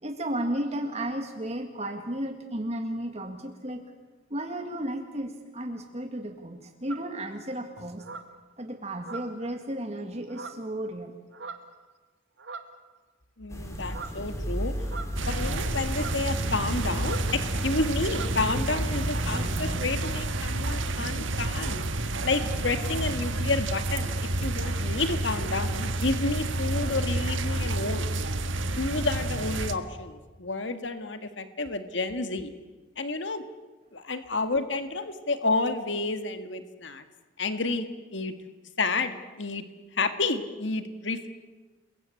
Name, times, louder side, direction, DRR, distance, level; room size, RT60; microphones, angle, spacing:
voice 1, 0.0-3.8 4.3-8.0 8.6-11.1, right 1 dB, 35° right, 5 dB, 1.9 m, -33 dB
sound 1, 6.9-7.1 8.0-8.4 9.0-9.6 10.3-10.7 11.3-11.8 12.4-12.8 13.9-14.2 14.8-15.4 15.9-16.3 17.0-17.3 17.6-17.8 18.0-18.4, right 4 dB, 65° right, 2.0 m, -41 dB
voice 2, 13.4-14.7 15.3-21.8 22.2-28.1 28.6-32.5 33.0-33.4 33.9-37.0 37.4-38.3 38.8-39.6 39.9-41.3, left 3 dB, 70° left, 9 dB, 1.9 m, -30 dB
sound 2, 13.5-19.8, equal, 15° left, 4.4 m, -34 dB
sound 3, 15.2-29.7, right 2 dB, 85° right, 1.6 m, -30 dB
29.5 x 22.0 x 8.5 m, 1.2 s
head